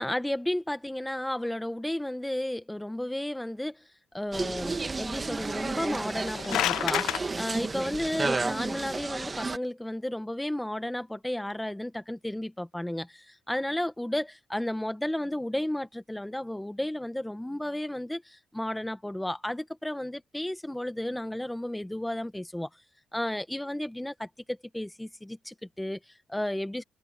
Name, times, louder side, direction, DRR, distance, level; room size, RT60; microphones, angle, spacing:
voice 1, 0.0-3.8 4.1-22.7 23.1-26.8, left 1 dB, 5° left, 1.2 m, -33 dB
sound 1, 4.3-9.6, right 3 dB, 25° right, 1.4 m, -32 dB
sound 2, 6.1-7.2, left 13 dB, 85° left, 0.3 m, -28 dB
cardioid pair, 90°, 0 cm